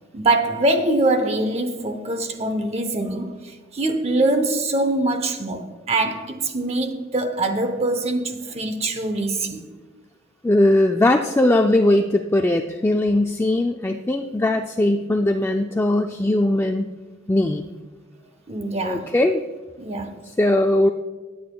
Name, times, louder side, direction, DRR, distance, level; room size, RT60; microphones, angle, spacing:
voice 1, 0.1-9.6 18.5-19.1 19.8-20.2, right 2 dB, 35° right, 0.8 m, -23 dB
voice 2, 10.4-16.9 17.3-17.7 18.8-19.4 20.4-20.9, left 1 dB, 15° left, 0.3 m, -19 dB
19.5 x 8.7 x 2.3 m
head